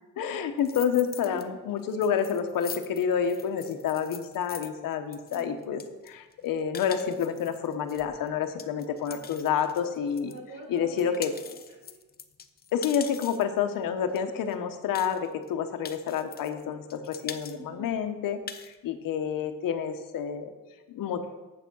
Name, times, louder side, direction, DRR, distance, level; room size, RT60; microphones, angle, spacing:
voice 1, 0.2-10.3 10.7-11.3 12.7-20.5 20.9-21.2, left 7 dB, 85° left, 8 dB, 1.0 m, -29 dB
sound 1, 0.6-1.4 1.8-10.4 10.8-13.6 14.2-14.3 14.5-14.6 14.9-15.5 15.8-16.6 16.9-17.6 17.9-18.0 18.3-18.7, left 7 dB, 30° left, 0.5 m, -43 dB
voice 2, 5.3-5.6 9.0-9.3 10.3-12.0 17.4-18.0, right 2 dB, 85° right, -2 dB, 3.2 m, -45 dB
8.2 x 7.0 x 6.1 m, 1.1 s
cardioid pair, 130°, 33 cm